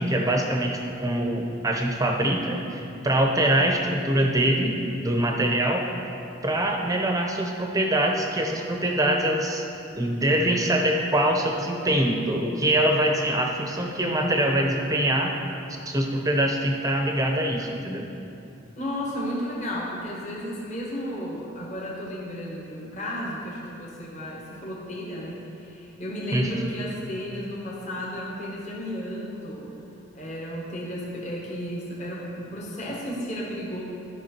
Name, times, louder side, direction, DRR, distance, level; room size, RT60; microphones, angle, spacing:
voice 1, 0.0-4.8 5.0-5.9 6.4-9.6 10.0-15.4 15.9-18.1 26.3-26.5, right 1 dB, 15° right, 2 dB, 0.8 m, -24 dB
voice 2, 18.7-29.7 30.1-33.8, equal, 35° left, -4 dB, 1.4 m, -33 dB
12.5 x 5.8 x 4.5 m, 2.7 s
head